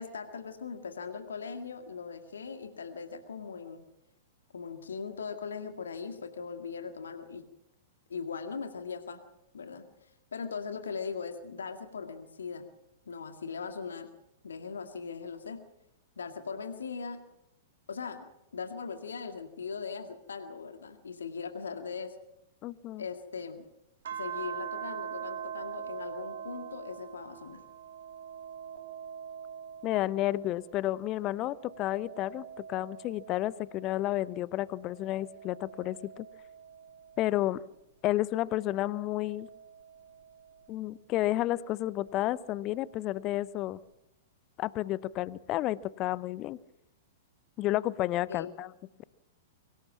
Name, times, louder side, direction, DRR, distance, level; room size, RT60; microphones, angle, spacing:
voice 1, 0.0-3.8 4.5-7.4 8.1-9.2 9.5-12.7 13.1-14.1 14.4-15.6 16.2-17.2 17.9-22.2 23.0-23.7 24.1-27.6 48.3-48.5, left 5 dB, 65° left, 7 dB, 2.0 m, -39 dB
voice 2, 22.6-23.0 29.8-36.3 37.2-37.6 38.0-39.5 40.7-43.8 44.6-46.6 47.6-48.7, left 15 dB, 30° left, 21 dB, 0.7 m, -31 dB
sound 1, 24.0-30.8 31.2-34.1 34.7-37.5 38.2-40.7 42.0-43.1, right 8 dB, 60° right, 2.4 m, -44 dB
23.5 x 18.0 x 7.3 m, 0.84 s
figure-of-eight pair, 105°, 0 cm